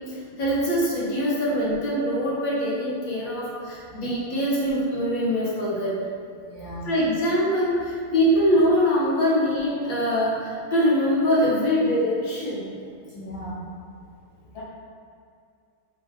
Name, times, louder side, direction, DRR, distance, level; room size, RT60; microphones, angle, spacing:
voice 1, 0.1-6.0 6.8-12.7, equal, 40° left, -6 dB, 2.1 m, -23 dB
voice 2, 6.4-6.9 13.1-13.6 14.5-14.6, equal, 60° left, -8 dB, 1.8 m, -36 dB
7.0 x 5.0 x 5.5 m, 2.4 s
omnidirectional pair, 2.4 m